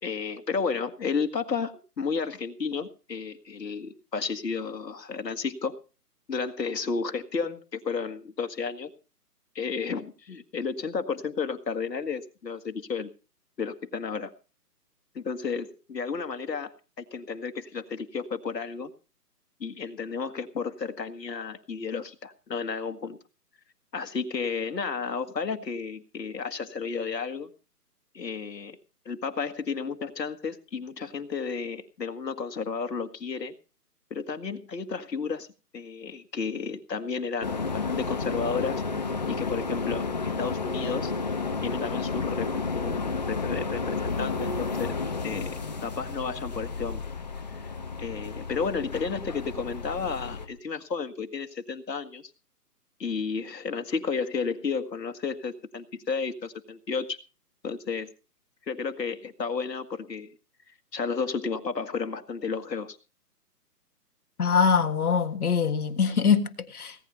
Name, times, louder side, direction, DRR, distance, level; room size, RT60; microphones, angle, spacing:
voice 1, 0.0-5.8 6.3-8.9 9.6-13.1 13.6-14.3 15.2-18.9 19.6-23.2 23.9-27.5 28.1-28.8 29.1-33.5 34.1-35.5 35.7-38.8 39.3-40.1 40.4-41.1 41.6-45.0 45.2-47.1 48.0-52.3 53.0-57.2 57.6-58.1 58.7-60.3 60.9-63.0, left 5 dB, 85° left, 1.8 m, -32 dB
sound 1, 37.4-50.5, left 4 dB, 25° left, 1.1 m, -31 dB
voice 2, 64.4-66.9, left 6 dB, 65° left, 1.7 m, -23 dB
18.5 x 9.2 x 5.4 m
hypercardioid pair, 175°, 48 cm